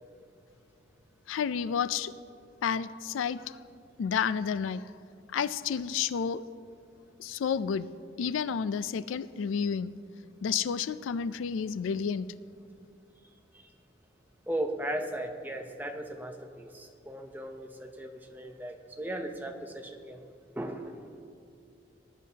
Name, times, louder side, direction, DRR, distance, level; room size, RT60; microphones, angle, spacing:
voice 1, 1.3-2.1 2.6-3.6 4.0-4.9 5.3-6.4 7.2-7.9 8.2-9.9 10.4-12.3, left 7 dB, 90° left, 15 dB, 0.3 m, -30 dB
voice 2, 14.5-20.2 20.5-21.1, right 1 dB, 10° right, 4 dB, 0.7 m, -37 dB
19.5 x 11.0 x 2.8 m, 2.5 s
head